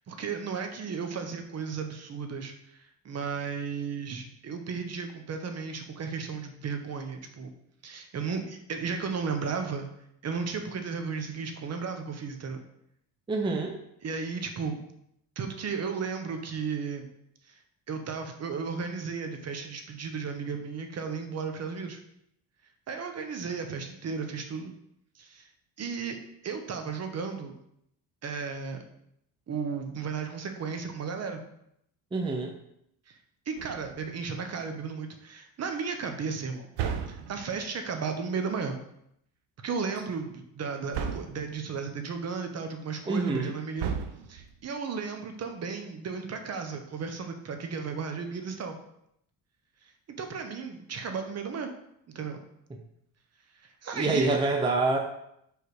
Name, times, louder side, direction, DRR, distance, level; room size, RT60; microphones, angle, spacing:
voice 1, 0.0-7.5 7.8-9.9 10.2-12.6 14.0-14.8 15.4-17.1 17.5-17.6 17.9-22.0 22.9-24.7 25.1-25.5 25.8-26.2 26.4-27.5 28.2-28.8 29.5-31.4 33.1-33.2 33.5-36.7 37.1-38.8 39.6-44.0 44.3-48.8 50.2-51.7 52.1-52.4 53.8-54.4, right 5 dB, 40° right, 6 dB, 0.9 m, -34 dB
voice 2, 13.3-13.8 32.1-32.6 43.1-43.5 53.9-55.0, right 3 dB, 10° right, 2 dB, 0.5 m, -26 dB
sound 1, 33.6-34.2 36.8-37.7 40.9-41.6 43.8-44.6, right 7 dB, 75° right, 0.8 m, -34 dB
4.9 x 4.8 x 4.7 m, 0.76 s
cardioid pair, 145°, 42 cm